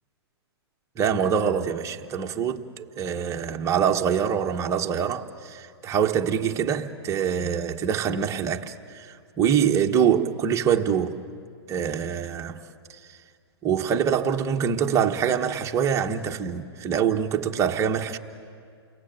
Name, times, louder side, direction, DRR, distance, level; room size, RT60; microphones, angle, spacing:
voice 1, 1.0-11.2 11.7-12.6 13.6-18.2, right 8 dB, 20° right, 1.2 m, -25 dB
29.5 x 22.5 x 9.0 m
hypercardioid pair, 140°, 14 cm